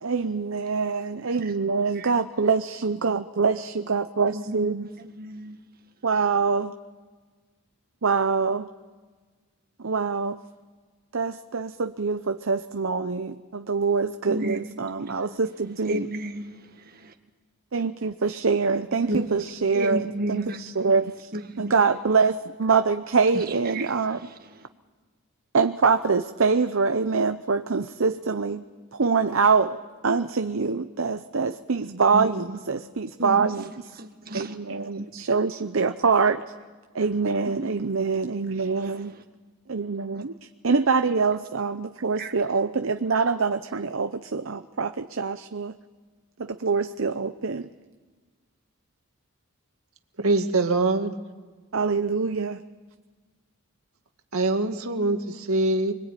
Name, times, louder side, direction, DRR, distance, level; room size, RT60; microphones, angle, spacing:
voice 1, 0.0-4.9 6.0-6.7 8.0-8.7 9.8-10.4 11.1-16.1 17.7-21.3 21.6-24.2 25.5-28.6 28.9-29.8 30.0-33.7 34.3-36.4 36.9-39.1 39.7-40.3 40.6-45.8 46.4-47.7 51.7-52.6, right 4 dB, 65° right, 8 dB, 0.8 m, -24 dB
voice 2, 4.3-4.7 5.0-5.6 14.3-14.6 15.0-15.5 15.9-17.1 19.1-19.3 19.7-20.6 21.3-21.8 23.3-23.4 23.7-24.7 32.1-32.3 33.2-33.5 34.0-34.6 34.8-35.1 38.8-39.2 40.1-40.2 42.2-42.3, right 1 dB, 45° right, 5 dB, 1.7 m, -33 dB
voice 3, 50.2-51.1 54.3-55.9, right 2 dB, 90° right, 5 dB, 2.1 m, -23 dB
25.5 x 22.0 x 9.1 m, 1.4 s
head